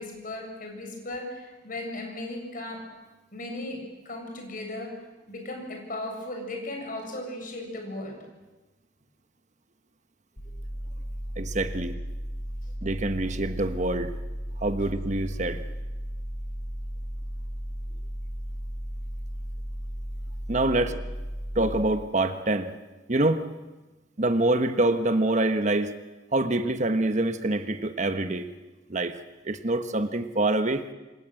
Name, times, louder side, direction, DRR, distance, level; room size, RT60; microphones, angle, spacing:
voice 1, 0.0-2.9 3.3-5.0 5.3-8.2 20.8-20.9, left 1 dB, 50° left, 3 dB, 7.6 m, -36 dB
sound 1, 10.4-21.8, equal, 70° left, 5.1 m, -35 dB
voice 2, 11.4-12.0 12.8-14.2 14.6-15.6 20.5-21.0 21.5-22.7 23.1-23.5 24.2-25.9 26.3-28.5 28.9-29.2 29.4-30.9, right 2 dB, 40° right, 9 dB, 1.2 m, -25 dB
27.5 x 26.0 x 7.8 m, 1.1 s
head